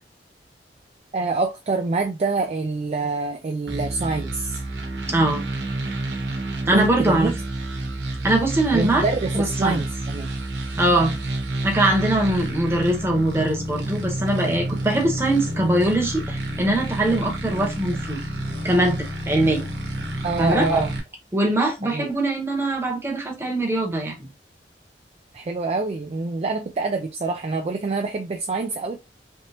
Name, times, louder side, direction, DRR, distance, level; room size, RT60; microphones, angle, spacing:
voice 1, 1.1-4.6 6.7-7.3 8.7-10.3 20.2-20.9 21.8-22.1 25.3-29.0, right 3 dB, 35° right, 0.4 m, -26 dB
sound 1, 3.7-21.0, right 1 dB, 85° right, 1.0 m, -29 dB
voice 2, 5.1-5.4 6.7-7.3 8.2-9.0 9.3-9.8 10.8-11.1 11.6-18.2 18.6-19.7 20.4-20.9 21.3-24.3, right 1 dB, 15° right, 0.9 m, -22 dB
3.2 x 2.8 x 2.8 m
head